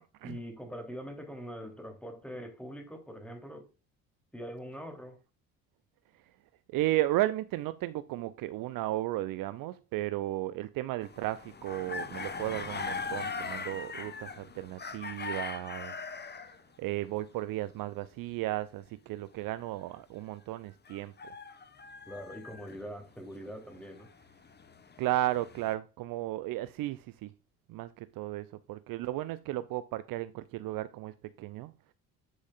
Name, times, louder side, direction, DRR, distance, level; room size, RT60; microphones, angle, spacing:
voice 1, 0.2-3.7 4.3-5.2 22.1-24.1, equal, 5° left, 3.4 m, -43 dB
voice 2, 6.7-15.9 16.8-21.1 25.0-27.3 27.7-31.7, right 15 dB, 50° right, 0.6 m, -34 dB
sound 1, 11.0-16.6 20.9-22.8 23.6-25.7, left 4 dB, 25° left, 1.2 m, -40 dB
10.5 x 6.3 x 2.5 m
figure-of-eight pair, 55°, 42 cm